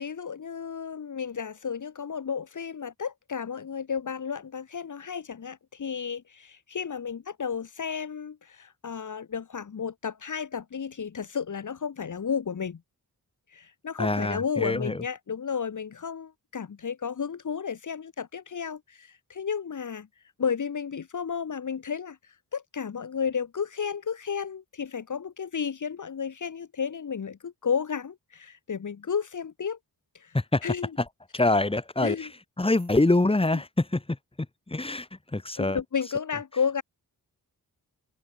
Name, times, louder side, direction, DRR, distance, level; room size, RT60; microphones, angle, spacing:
voice 1, 0.0-12.8 13.5-20.1 20.4-29.8 30.1-30.4 30.6-30.9 32.0-32.3 35.6-36.8, left 6 dB, 55° left, 2.2 m, -32 dB
voice 2, 14.0-15.0 30.3-30.6 31.0-31.1 31.3-32.3 32.6-34.2 34.7-35.8, left 2 dB, 15° left, 3.6 m, -25 dB
wide cardioid pair, 155°, 37 cm